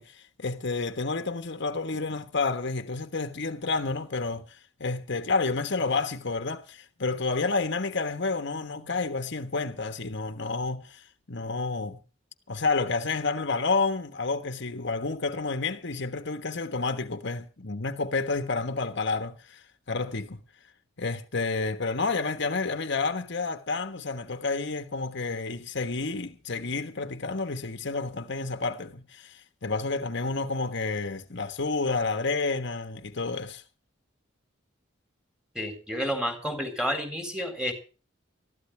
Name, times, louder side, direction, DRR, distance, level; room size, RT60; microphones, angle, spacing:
voice 1, 0.0-12.0 12.5-20.4 21.0-33.6, left 3 dB, 60° left, 1.3 m, -30 dB
voice 2, 35.5-37.7, equal, 5° right, 4.0 m, -30 dB
20.5 x 14.5 x 3.3 m
head